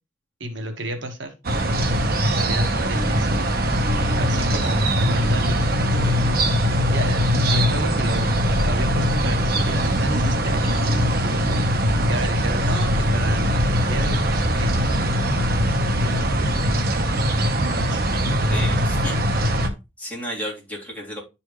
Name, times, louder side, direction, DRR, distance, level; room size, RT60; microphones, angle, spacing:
voice 1, 0.4-1.3 1.9-3.3 4.2-6.4 6.9-11.6 12.1-18.0, right 1 dB, 70° right, 5 dB, 1.4 m, -33 dB
sound 1, 1.4-19.7, equal, 50° right, 1.1 m, -21 dB
voice 2, 18.5-19.7 20.0-21.2, equal, 10° left, -5 dB, 3.2 m, -33 dB
11.0 x 4.3 x 3.2 m, 0.26 s
head